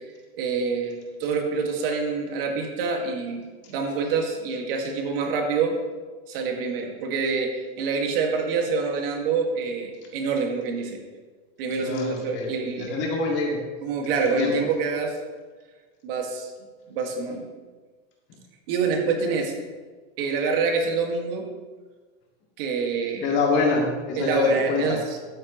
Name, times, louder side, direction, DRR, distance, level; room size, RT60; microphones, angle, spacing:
voice 1, 0.4-5.7 6.3-11.0 11.6-12.9 13.8-15.2 16.0-16.5 16.9-17.5 18.7-19.5 20.2-21.4 22.6-23.4 24.2-25.2, right 4 dB, 55° right, 2 dB, 1.9 m, -26 dB
voice 2, 11.7-12.5 12.8-13.6 14.4-14.5 23.2-25.0, left 3 dB, 30° left, -1 dB, 2.0 m, -25 dB
12.5 x 9.1 x 3.1 m, 1.3 s
supercardioid pair, 165°, 34 cm